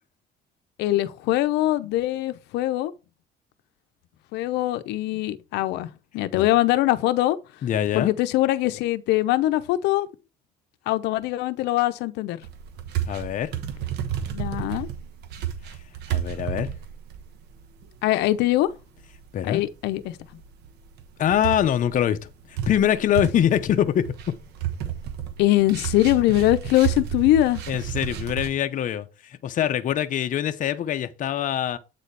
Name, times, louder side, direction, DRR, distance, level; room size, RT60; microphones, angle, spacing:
voice 1, 0.8-2.9 4.3-5.9 6.1-7.4 7.9-10.1 10.9-12.4 14.3-14.9 18.0-18.7 19.4-20.2 25.4-27.6, left 15 dB, 85° left, 0.7 m, -22 dB
voice 2, 7.6-8.1 13.1-13.5 16.1-16.7 19.3-19.6 21.2-22.2 22.5-24.1 27.7-31.8, left 10 dB, 50° left, 0.8 m, -24 dB
sound 1, 12.4-17.9 18.2-18.3 18.8-19.2 19.7-19.8 20.0-20.1 20.4-20.7 21.0-28.5, right 10 dB, 80° right, 1.1 m, -31 dB
8.3 x 4.2 x 3.3 m
cardioid pair, 110°, 17 cm